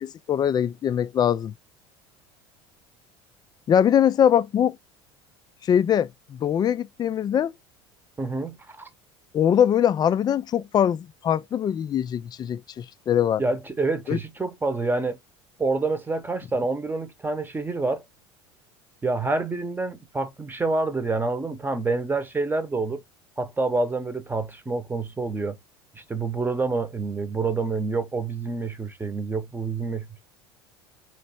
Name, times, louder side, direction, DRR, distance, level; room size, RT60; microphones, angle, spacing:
voice 1, 0.0-1.5 3.7-4.8 5.6-7.5 9.3-13.4 14.1-14.2, left 9 dB, 30° left, 0.4 m, -22 dB
voice 2, 8.2-8.9 13.4-15.2 15.6-18.0 19.0-23.0 23.4-25.6 25.9-30.2, right 3 dB, 15° right, 0.9 m, -27 dB
3.2 x 3.1 x 4.3 m
hypercardioid pair, 80°, 14 cm